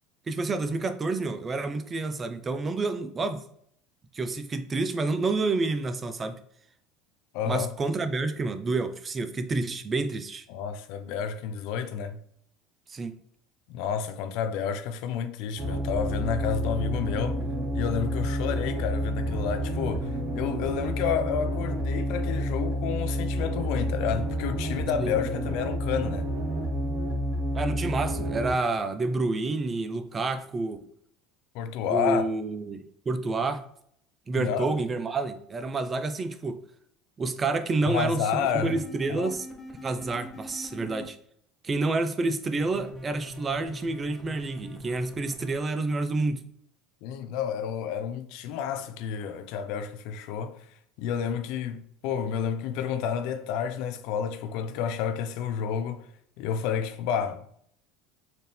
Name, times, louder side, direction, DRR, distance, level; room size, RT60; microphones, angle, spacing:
voice 1, 0.3-3.4 4.1-6.4 7.4-10.4 12.9-13.2 25.0-25.1 27.5-30.8 31.9-33.6 34.3-36.6 37.2-39.5 39.8-41.2 41.6-46.4, right 3 dB, 30° right, 0.5 m, -29 dB
voice 2, 7.3-7.7 10.5-12.2 13.7-17.4 17.7-26.2 31.5-32.2 34.3-34.7 37.9-38.8 39.1-39.3 47.0-50.7 51.0-56.1 56.4-57.5, left 7 dB, 70° left, 0.4 m, -30 dB
sound 1, 15.6-28.5, equal, 60° right, 1.1 m, -29 dB
sound 2, 38.4-41.0 42.6-45.5, left 1 dB, 15° left, 1.1 m, -42 dB
4.2 x 2.6 x 3.4 m
supercardioid pair, 90°, 0 cm